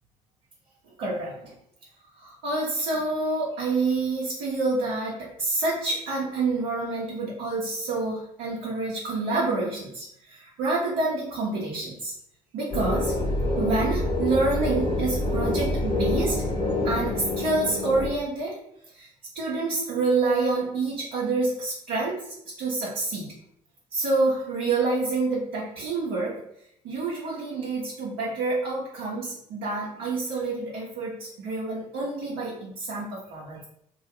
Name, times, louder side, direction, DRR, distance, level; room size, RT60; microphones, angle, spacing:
voice 1, 1.0-1.5 2.1-12.1 12.5-16.4 16.8-18.6 18.9-19.1 19.3-23.3 23.9-26.4 26.8-33.6, right 3 dB, 70° right, -7 dB, 1.0 m, -28 dB
sound 1, 12.7-18.1, left 1 dB, 25° left, 1.2 m, -26 dB
2.8 x 2.7 x 3.2 m, 0.70 s
hypercardioid pair, 55°, 18 cm